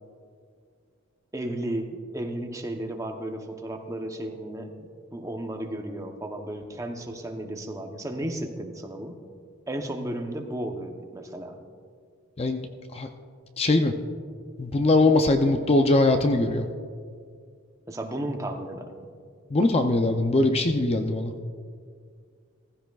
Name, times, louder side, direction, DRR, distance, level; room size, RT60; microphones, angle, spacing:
voice 1, 1.3-9.2 9.7-11.6 17.9-18.9, right 1 dB, 15° right, 4 dB, 0.7 m, -34 dB
voice 2, 13.6-13.9 14.6-16.7 19.5-21.3, left 2 dB, 30° left, 6 dB, 0.5 m, -21 dB
16.0 x 15.0 x 2.3 m, 2.1 s
head